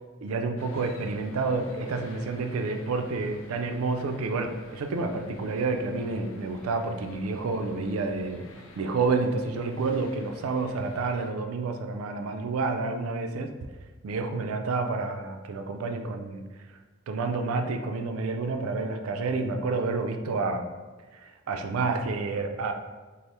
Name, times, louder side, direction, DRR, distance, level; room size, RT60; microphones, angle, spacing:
voice 1, 0.2-8.5 8.8-13.5 14.0-16.4 17.1-20.7 21.1-22.7, right 3 dB, 90° right, 6 dB, 0.4 m, -29 dB
sound 1, 0.6-11.3, left 3 dB, 70° left, 0.4 m, -50 dB
3.3 x 2.0 x 4.1 m, 1.3 s
head